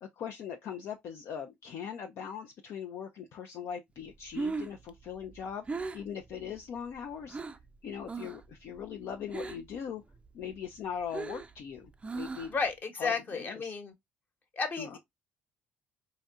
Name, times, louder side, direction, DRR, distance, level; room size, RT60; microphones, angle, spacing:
voice 1, 0.0-5.6 5.9-7.4 7.8-10.0 10.3-12.5 13.0-13.7 14.8-15.0, left 7 dB, 60° left, 0.5 m, -40 dB
Breathing, 4.1-7.7 8.0-8.5 8.8-9.8 10.1-12.7, right 4 dB, 20° right, 0.4 m, -39 dB
voice 2, 12.5-13.9 14.6-15.0, left 4 dB, 40° left, 1.2 m, -33 dB
4.1 x 2.8 x 2.3 m
hypercardioid pair, 55°, 5 cm